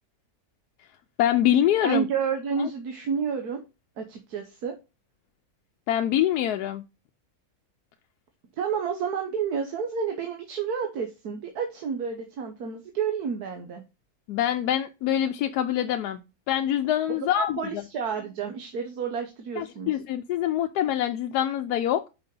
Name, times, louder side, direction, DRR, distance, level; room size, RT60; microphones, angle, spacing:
voice 1, 1.2-2.1 2.6-2.7 5.9-6.8 14.3-16.2 16.5-17.8 19.6-22.1, left 11 dB, 80° left, 7 dB, 1.1 m, -25 dB
voice 2, 1.8-3.6 4.0-4.7 8.6-13.8 17.1-19.9, right 6 dB, 75° right, 5 dB, 1.5 m, -30 dB
6.0 x 5.2 x 5.3 m, 0.28 s
omnidirectional pair, 1.7 m